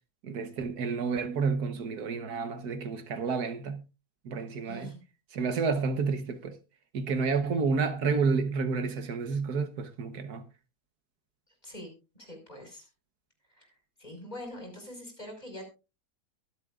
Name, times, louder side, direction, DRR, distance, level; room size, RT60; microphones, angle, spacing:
voice 1, 0.2-3.8 4.2-4.9 5.3-6.6 6.9-10.4, right 5 dB, 75° right, 1.6 m, -30 dB
voice 2, 4.6-5.0 11.6-12.9 13.5-15.7, left 1 dB, 25° left, 5.6 m, -44 dB
23.5 x 8.4 x 2.4 m
omnidirectional pair, 1.7 m